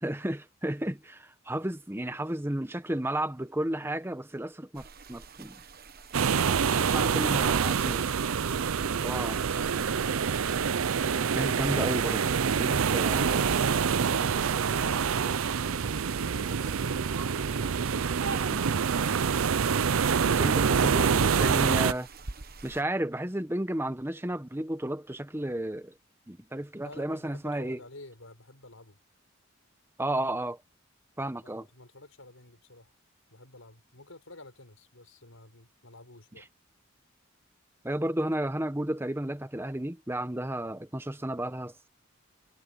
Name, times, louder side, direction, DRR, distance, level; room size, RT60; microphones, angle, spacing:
voice 1, 0.0-5.6 6.4-8.0 9.0-9.3 11.3-13.7 18.3-18.6 20.2-22.1 22.6-25.9 26.3-27.8 30.0-30.6 31.2-31.6 37.8-41.9, right 1 dB, 10° right, 1.0 m, -33 dB
sound 1, 4.7-22.8, right 4 dB, 45° right, 1.1 m, -50 dB
sound 2, 6.1-21.9, right 6 dB, 90° right, 0.6 m, -26 dB
voice 2, 8.7-9.9 13.6-19.0 26.8-29.0 31.4-32.9 33.3-36.5, left 2 dB, 85° left, 5.9 m, -51 dB
head